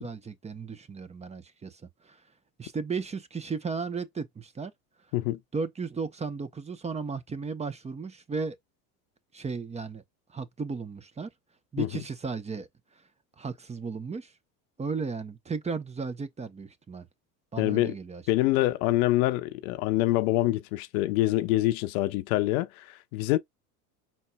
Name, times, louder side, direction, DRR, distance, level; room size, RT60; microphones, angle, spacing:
voice 1, 0.0-2.2 2.6-4.7 5.5-8.6 9.3-10.0 10.3-11.3 11.7-12.7 12.9-13.0 13.4-14.3 14.8-17.1 17.5-18.2, right 4 dB, 15° right, 0.7 m, -35 dB
voice 2, 17.6-18.0 18.3-23.4, left 17 dB, 65° left, 0.8 m, -25 dB
5.6 x 4.2 x 2.2 m
hypercardioid pair, 85°, 47 cm